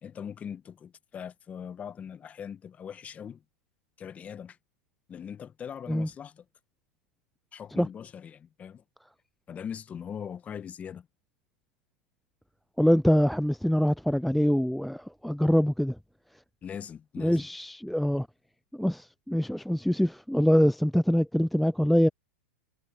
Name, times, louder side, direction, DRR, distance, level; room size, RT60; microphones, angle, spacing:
voice 1, 0.0-3.4 4.0-4.6 5.1-6.4 7.5-8.8 9.5-11.1 16.6-17.5, left 8 dB, 25° left, 1.4 m, -41 dB
voice 2, 12.8-15.9 17.2-18.3 18.8-22.1, equal, ahead, 0.4 m, -24 dB
hypercardioid pair, 105°, 6 cm